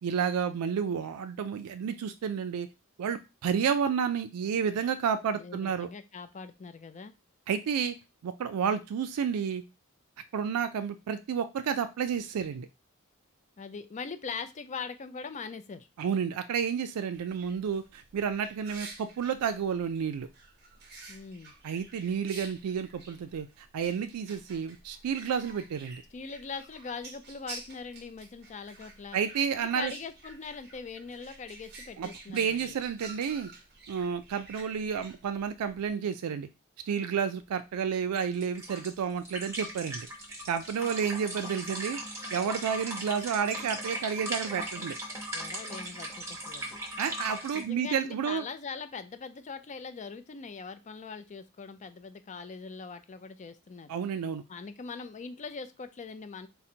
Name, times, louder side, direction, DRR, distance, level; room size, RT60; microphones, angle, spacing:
voice 1, 0.0-2.7 3.0-5.9 7.5-8.0 8.2-9.6 10.3-12.7 16.0-20.3 21.6-26.0 29.1-29.9 32.0-33.5 33.9-36.5 36.9-40.1 40.5-42.0 42.3-45.0 47.0-48.4 53.9-54.4, right 7 dB, 80° right, 9 dB, 0.4 m, -31 dB
voice 2, 5.3-7.1 13.6-15.9 21.1-21.5 26.1-29.2 29.6-32.8 45.3-46.8 47.5-53.9 54.5-56.5, left 5 dB, 35° left, 11 dB, 0.4 m, -41 dB
sound 1, 17.1-35.9, right 3 dB, 45° right, 0.9 m, -50 dB
sound 2, 38.2-47.6, right 1 dB, 10° right, 1.0 m, -38 dB
3.8 x 2.1 x 4.3 m, 0.26 s
head